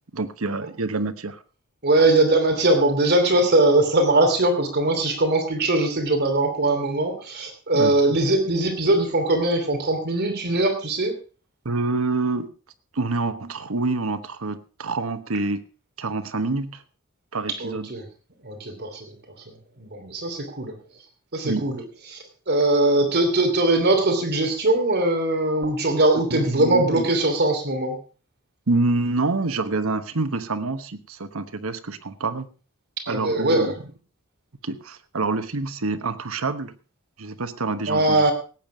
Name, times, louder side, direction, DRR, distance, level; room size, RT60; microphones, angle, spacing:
voice 1, 0.1-1.4 7.7-7.9 11.6-12.5 12.9-15.6 16.0-16.8 17.3-17.9 21.4-21.6 26.3-27.1 28.7-32.5 33.1-33.7 34.6-36.7 37.2-38.3, right 3 dB, 75° right, 11 dB, 1.1 m, -27 dB
voice 2, 1.8-11.1 17.6-18.0 18.4-19.1 19.5-20.7 21.3-21.8 22.1-28.0 33.1-33.7 37.9-38.3, right 2 dB, 50° right, 4 dB, 2.9 m, -21 dB
18.0 x 9.2 x 4.9 m, 0.36 s
head